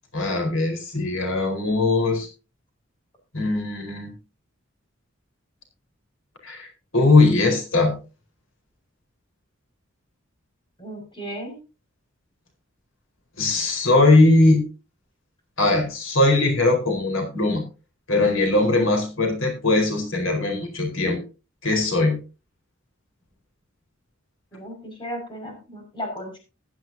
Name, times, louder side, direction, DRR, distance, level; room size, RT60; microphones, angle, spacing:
voice 1, 0.1-2.3 3.3-4.1 6.4-6.7 6.9-8.0 13.4-14.7 15.6-17.6 18.1-21.2 21.6-22.2, left 2 dB, 90° left, 3 dB, 4.4 m, -20 dB
voice 2, 10.8-11.6 24.5-26.4, equal, 25° left, 2 dB, 5.8 m, -35 dB
15.5 x 12.5 x 2.8 m, 0.31 s
head